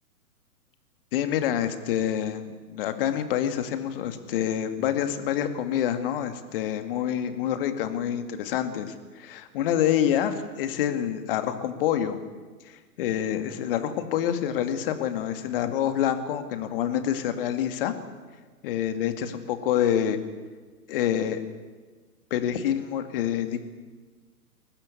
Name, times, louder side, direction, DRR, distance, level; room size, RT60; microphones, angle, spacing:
voice 1, 1.1-12.2 12.6-17.9 18.6-20.2 20.9-21.4 22.3-23.6, left 10 dB, 35° left, 9 dB, 2.3 m, -27 dB
23.5 x 19.0 x 8.6 m, 1.4 s
figure-of-eight pair, 115°, 46 cm